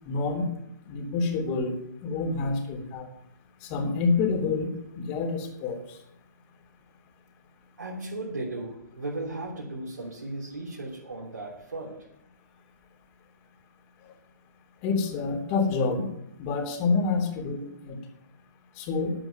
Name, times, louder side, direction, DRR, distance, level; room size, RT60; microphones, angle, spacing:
voice 1, 0.0-0.5 0.9-3.1 3.6-6.0 14.8-16.1 16.4-18.0 18.8-19.1, left 4 dB, 35° left, 3 dB, 3.2 m, -28 dB
voice 2, 7.8-12.1, right 2 dB, 85° right, -4 dB, 3.6 m, -36 dB
11.0 x 8.9 x 7.0 m, 0.75 s
figure-of-eight pair, 125°, 10 cm